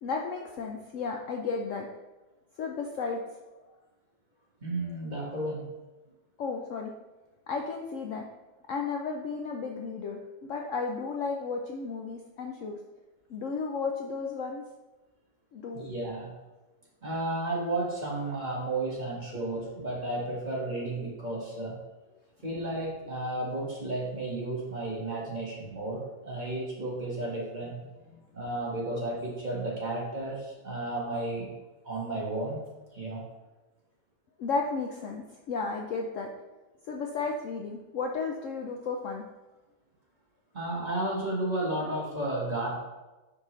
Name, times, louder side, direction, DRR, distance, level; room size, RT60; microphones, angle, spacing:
voice 1, 0.0-1.9 2.6-3.2 3.7-3.8 6.4-6.9 7.5-8.3 8.7-10.2 10.5-12.8 13.3-14.6 15.5-15.9 28.1-28.2 34.4-36.3 36.8-39.2, left 4 dB, 65° left, 2 dB, 0.8 m, -33 dB
voice 2, 4.6-5.7 15.7-16.3 17.0-21.8 22.4-27.8 28.3-31.5 31.8-32.6 32.9-33.2 40.5-42.7, right 2 dB, 30° right, -4 dB, 1.6 m, -33 dB
9.5 x 4.6 x 3.1 m, 1.1 s
omnidirectional pair, 1.7 m